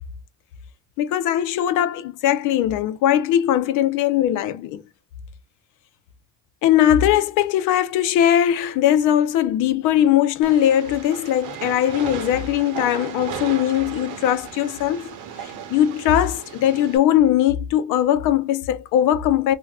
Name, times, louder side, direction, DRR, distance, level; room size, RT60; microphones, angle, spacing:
voice 1, 1.0-4.8 6.6-15.1 15.4-19.5, left 11 dB, 90° left, 0.5 m, -20 dB
Train, 10.4-17.0, right 8 dB, 90° right, 0.8 m, -35 dB
3.5 x 2.2 x 2.2 m
cardioid pair, 100°, 30 cm